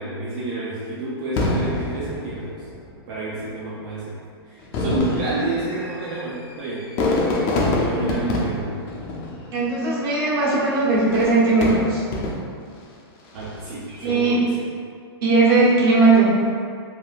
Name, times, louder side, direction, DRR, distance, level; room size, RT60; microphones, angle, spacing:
voice 1, 0.0-2.6 3.1-4.2 4.4-6.9 7.7-8.8 13.3-14.7, right 2 dB, 40° right, -8 dB, 0.5 m, -30 dB
Fireworks, 1.4-3.0 3.8-3.9 4.6-9.9 10.9-12.7 13.3-13.8, left 2 dB, 35° left, 0.5 m, -26 dB
voice 2, 9.5-12.0 14.0-14.4 15.2-16.3, right 3 dB, 60° right, -8 dB, 1.2 m, -18 dB
3.4 x 2.1 x 2.5 m, 2.2 s
hypercardioid pair, 130°, 14 cm